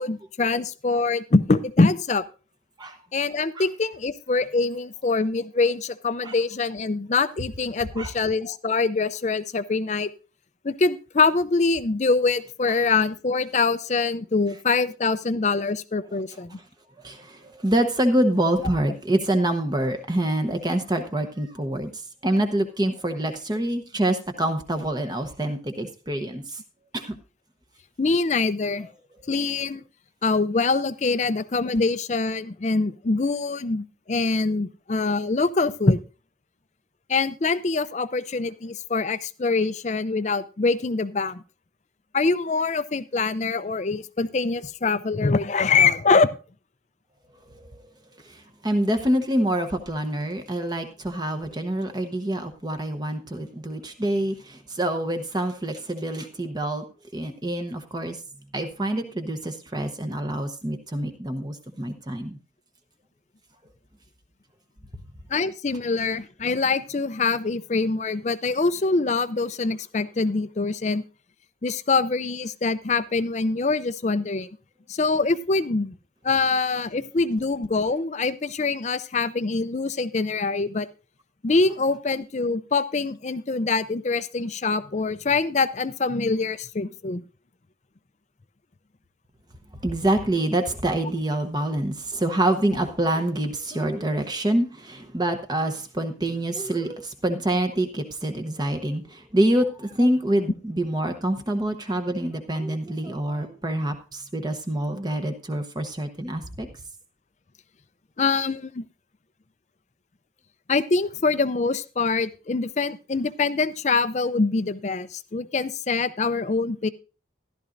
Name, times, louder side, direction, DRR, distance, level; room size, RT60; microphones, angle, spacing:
voice 1, 0.0-2.3 3.1-10.1 10.6-16.6 28.0-28.9 29.3-29.8 30.2-36.0 37.1-41.4 42.1-46.3 65.3-71.0 71.6-74.5 74.9-75.9 76.2-80.9 81.4-87.2 108.2-108.8 110.7-116.9, left 4 dB, 35° left, 14 dB, 0.5 m, -24 dB
voice 2, 17.0-26.6 26.9-27.2 47.5-47.8 48.1-56.8 57.1-58.2 58.5-62.4 64.9-65.0 89.7-106.7, right 1 dB, 20° right, 7 dB, 0.9 m, -26 dB
14.0 x 12.0 x 2.6 m, 0.34 s
head